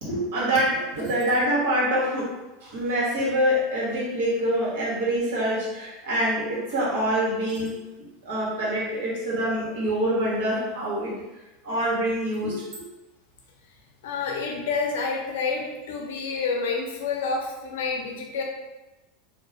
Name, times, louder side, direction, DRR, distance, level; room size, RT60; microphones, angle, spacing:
voice 1, 0.0-2.3 2.6-7.8 8.2-11.1 11.6-12.8, equal, 75° right, -6 dB, 1.3 m, -25 dB
voice 2, 14.0-18.4, left 4 dB, 80° left, 1 dB, 0.6 m, -28 dB
2.7 x 2.1 x 2.8 m, 1.0 s
hypercardioid pair, 100°, 0 cm